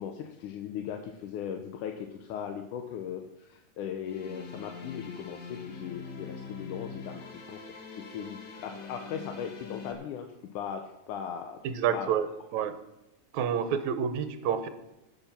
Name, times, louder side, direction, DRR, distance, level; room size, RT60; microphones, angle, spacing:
voice 1, 0.0-7.6 8.0-11.6 11.9-12.1 12.6-12.7, left 8 dB, 75° left, 4 dB, 2.3 m, -38 dB
sound 1, 4.0-9.9, left 5 dB, 45° left, 1.6 m, -43 dB
voice 2, 11.6-12.3 12.5-12.7 13.3-14.7, right 8 dB, 70° right, 10 dB, 2.2 m, -28 dB
17.5 x 7.0 x 5.9 m, 0.92 s
omnidirectional pair, 3.8 m